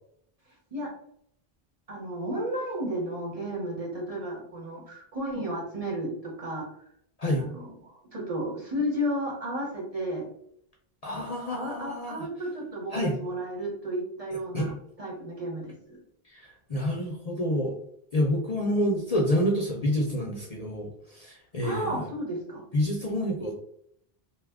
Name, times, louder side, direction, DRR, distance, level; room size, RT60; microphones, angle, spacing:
voice 1, 1.9-6.7 7.4-10.3 11.5-16.0 21.6-22.6, equal, 40° right, -2 dB, 0.9 m, -33 dB
voice 2, 11.0-12.3 12.9-13.2 14.5-14.7 16.2-17.7 18.1-21.9 22.7-23.5, equal, 45° left, -1 dB, 0.5 m, -28 dB
2.7 x 2.4 x 3.4 m, 0.69 s
omnidirectional pair, 1.1 m